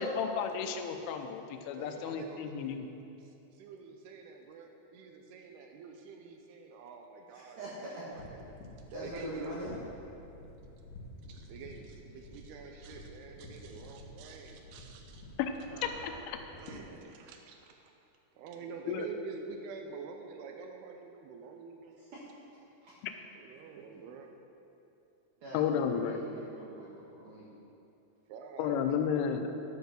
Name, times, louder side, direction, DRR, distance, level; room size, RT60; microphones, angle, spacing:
voice 1, 0.0-2.9 15.4-15.5 16.0-16.4 18.9-19.1 25.5-26.2 28.6-29.5, left 7 dB, 90° left, 6 dB, 3.2 m, -32 dB
voice 2, 1.7-2.6 3.2-8.5 9.0-9.6 11.3-15.2 15.7-17.7 18.4-22.1 23.4-24.3 28.3-29.3, right 5 dB, 90° right, 3 dB, 2.3 m, -48 dB
voice 3, 7.3-8.0 8.9-9.8 22.0-22.2 22.8-23.0 25.4-27.5, right 1 dB, 65° right, -6 dB, 2.1 m, -43 dB
sound 1, 8.1-16.9, left 1 dB, 75° left, 3.5 m, -51 dB
10.5 x 8.2 x 6.2 m, 2.8 s
omnidirectional pair, 5.5 m